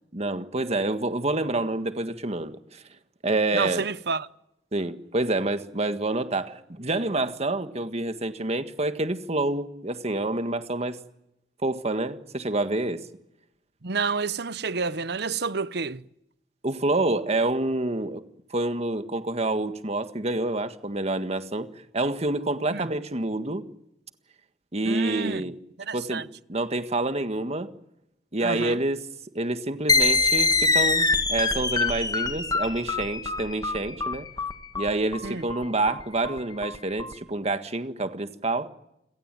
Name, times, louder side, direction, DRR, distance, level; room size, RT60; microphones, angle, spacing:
voice 1, 0.1-2.8 3.2-3.9 4.7-11.0 11.6-13.0 16.6-18.2 18.5-21.7 21.9-23.6 24.7-25.6 25.9-27.7 28.3-29.0 29.3-34.3 34.8-38.7, right 2 dB, 35° right, 1.7 m, -27 dB
voice 2, 3.5-4.3 13.8-16.0 22.7-22.9 24.8-25.4 25.8-26.2 28.4-28.8 35.2-35.4, right 4 dB, 65° right, 0.9 m, -29 dB
sound 1, 29.9-37.1, left 3 dB, 20° left, 1.8 m, -24 dB
29.5 x 17.5 x 9.3 m
head